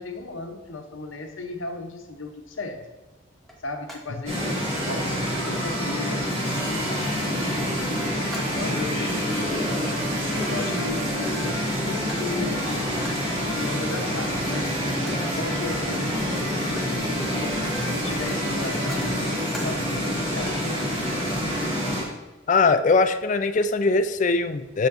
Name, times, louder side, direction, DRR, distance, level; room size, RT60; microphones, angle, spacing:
voice 1, 0.0-2.8 3.6-8.0 8.5-12.9 13.5-17.5 18.0-19.4 19.6-19.9 20.2-20.9, left 3 dB, 75° left, 5 dB, 0.8 m, -36 dB
sound 1, 2.2-2.3 3.4-4.2 4.5-5.1 5.4-5.7 6.3-6.6 7.0-7.5 7.8-9.1 9.5-11.5 12.1-12.4 13.0-13.4 14.5-14.7 15.0-15.4 16.1-17.0 17.3-19.9 20.2-20.5, equal, ahead, 0.7 m, -44 dB
sound 2, 4.3-22.0, equal, 30° right, 1.7 m, -27 dB
voice 2, 22.5-24.9, left 3 dB, 35° left, 11 dB, 0.3 m, -21 dB
7.2 x 6.4 x 2.6 m, 1.1 s
head